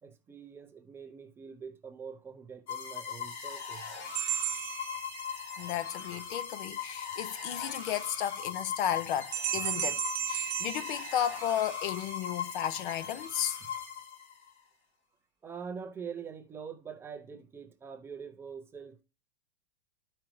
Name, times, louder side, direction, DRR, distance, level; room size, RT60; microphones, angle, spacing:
voice 1, 0.0-3.9 9.6-9.7 10.4-10.5 15.4-19.0, right 6 dB, 10° right, 0.3 m, -44 dB
sound 1, 2.7-14.5, left 7 dB, 90° left, 2.8 m, -40 dB
sound 2, 4.1-5.7 9.3-11.8, right 11 dB, 55° right, 0.9 m, -35 dB
voice 2, 5.6-13.6, left 10 dB, 50° left, 0.5 m, -34 dB
12.5 x 5.0 x 3.0 m
supercardioid pair, 150°, 32 cm